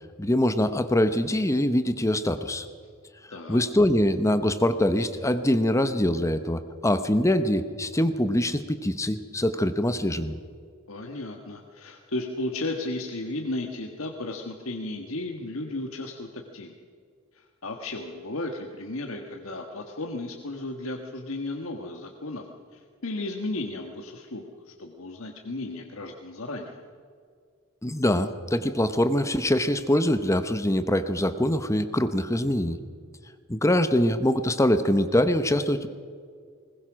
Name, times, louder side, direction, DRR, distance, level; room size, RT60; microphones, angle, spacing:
voice 1, 0.2-2.7 3.3-10.4 27.8-32.8 33.5-35.9, left 1 dB, 15° left, 10 dB, 0.8 m, -24 dB
voice 2, 10.9-16.7 17.3-22.5 22.7-26.8, left 2 dB, 80° left, 3 dB, 1.5 m, -34 dB
20.5 x 20.5 x 6.2 m, 2.1 s
head